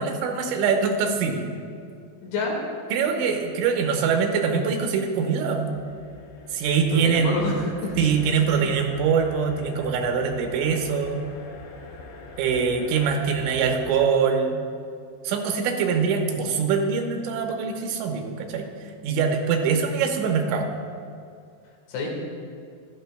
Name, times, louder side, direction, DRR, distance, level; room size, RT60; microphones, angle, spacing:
voice 1, 0.0-1.4 2.9-5.7 6.5-7.3 8.0-11.2 12.4-14.6 15.2-18.7 19.0-20.7, right 6 dB, 85° right, 3 dB, 3.2 m, -23 dB
voice 2, 2.2-2.6 6.9-7.9 8.5-8.8 21.9-22.1, left 3 dB, 90° left, -2 dB, 4.3 m, -28 dB
sound 1, 5.6-14.1, left 3 dB, 70° left, 2.3 m, -43 dB
16.0 x 12.5 x 2.3 m, 2.3 s
omnidirectional pair, 5.2 m